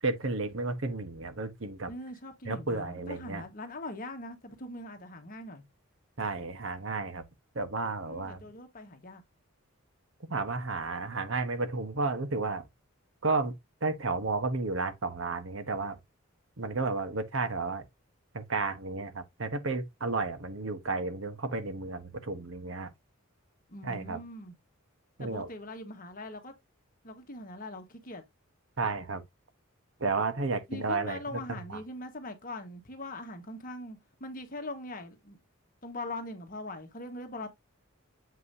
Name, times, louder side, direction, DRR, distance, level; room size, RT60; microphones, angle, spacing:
voice 1, 0.0-1.9 2.4-3.4 6.2-7.2 7.5-8.4 10.3-12.6 13.2-13.5 13.8-16.0 16.6-17.8 18.3-22.9 23.8-24.2 25.2-25.5 28.8-29.2 30.0-31.4 31.7-31.8, right 3 dB, 60° right, 1.1 m, -32 dB
voice 2, 1.9-5.6 8.1-9.2 23.7-24.5 25.2-26.5 27.0-28.2 30.7-35.4 35.8-37.5, left 1 dB, 40° left, 1.4 m, -41 dB
7.8 x 5.4 x 2.7 m
head